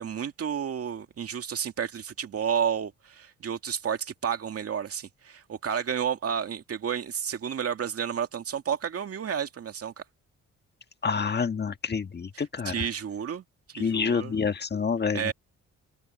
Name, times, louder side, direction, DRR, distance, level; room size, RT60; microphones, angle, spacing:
voice 1, 0.0-9.9 12.7-13.4 13.7-14.4 15.1-15.3, right 8 dB, 50° right, 2.2 m, -31 dB
voice 2, 11.0-12.8 13.7-15.3, left 5 dB, 35° left, 1.5 m, -28 dB
open air
cardioid pair, 90°, 30 cm